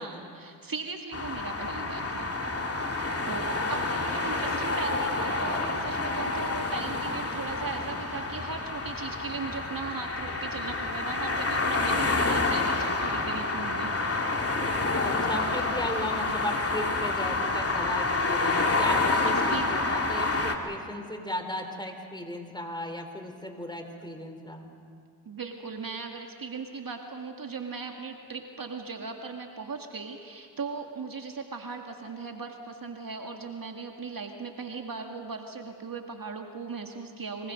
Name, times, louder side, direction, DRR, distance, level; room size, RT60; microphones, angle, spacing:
voice 1, 0.0-2.3 2.8-14.5 19.2-19.7 25.3-37.5, right 4 dB, 45° right, 3 dB, 2.1 m, -38 dB
sound 1, 1.1-20.6, left 3 dB, 30° left, 2.7 m, -28 dB
voice 2, 3.5-3.9 11.9-12.0 15.0-24.7, left 1 dB, 10° left, 5 dB, 4.0 m, -36 dB
28.0 x 23.0 x 5.3 m, 2.4 s
supercardioid pair, 50°, 48 cm